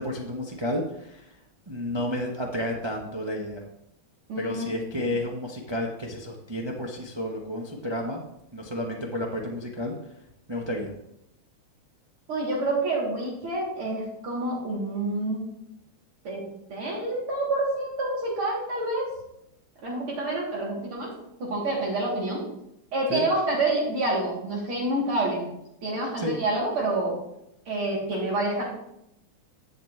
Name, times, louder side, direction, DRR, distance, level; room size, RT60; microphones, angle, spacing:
voice 1, 0.0-1.4 1.7-3.6 4.4-8.2 8.5-10.1 10.5-10.9 23.1-23.3 26.2-26.3, left 1 dB, 35° right, -1 dB, 0.4 m, -31 dB
voice 2, 4.3-4.6 12.3-15.4 16.2-16.4 16.7-19.0 19.8-21.1 21.4-22.4 22.9-25.5 25.8-27.2 27.7-28.6, right 2 dB, 85° right, -5 dB, 3.9 m, -27 dB
10.5 x 7.1 x 3.2 m, 0.81 s
omnidirectional pair, 2.3 m